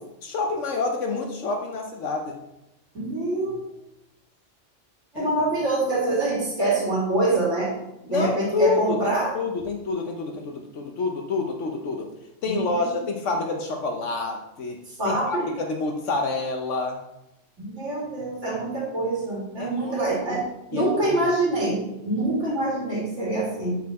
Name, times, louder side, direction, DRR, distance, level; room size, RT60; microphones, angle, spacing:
voice 1, 0.2-2.4 5.1-5.3 8.1-12.1 12.4-14.8 15.0-17.0 19.6-20.0 20.7-21.2, left 3 dB, 80° left, 2 dB, 1.3 m, -28 dB
voice 2, 2.9-3.6 5.1-7.7 8.0-9.3 12.5-12.8 14.9-15.4 17.6-23.8, right 2 dB, 80° right, -5 dB, 3.0 m, -25 dB
8.7 x 6.6 x 4.1 m, 0.88 s
omnidirectional pair, 1.2 m